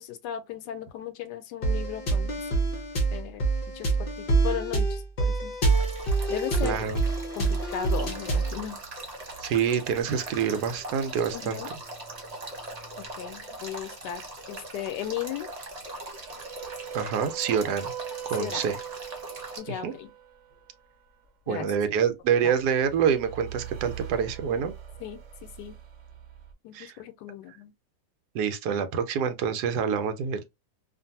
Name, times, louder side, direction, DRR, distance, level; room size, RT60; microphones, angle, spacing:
voice 1, 0.0-2.6 3.1-3.5 3.7-5.5 6.3-6.9 7.4-8.8 11.3-11.7 13.0-14.2 14.5-15.5 18.4-18.7 19.6-20.1 21.5-21.7 22.4-22.5 25.0-25.8 26.6-27.7, left 10 dB, 90° left, 1.2 m, -36 dB
sound 1, 1.6-8.6, right 3 dB, 50° left, 0.7 m, -26 dB
Male speech man speaking / Stream / Trickle dribble, 5.6-19.6, right 2 dB, 40° right, 0.5 m, -41 dB
voice 2, 6.6-7.0 9.4-11.6 16.9-17.9 18.3-18.8 19.8-19.9 21.5-24.7 26.7-26.9 28.3-30.4, right 7 dB, 80° right, 1.1 m, -26 dB
sound 2, 7.7-14.6 15.5-21.3 22.5-26.5, right 9 dB, 60° right, 0.9 m, -44 dB
2.5 x 2.5 x 2.7 m
omnidirectional pair, 1.7 m